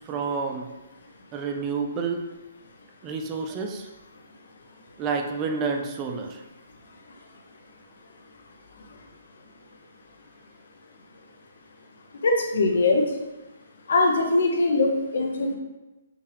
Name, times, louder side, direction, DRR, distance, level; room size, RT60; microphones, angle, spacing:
voice 1, 0.1-0.7 1.3-2.3 3.0-3.9 5.0-6.4, right 5 dB, 20° right, 3 dB, 0.4 m, -29 dB
voice 2, 12.2-13.0 13.9-15.6, left 2 dB, 65° left, 3 dB, 0.8 m, -21 dB
5.7 x 2.3 x 3.3 m, 1.1 s
hypercardioid pair, 160°, 0 cm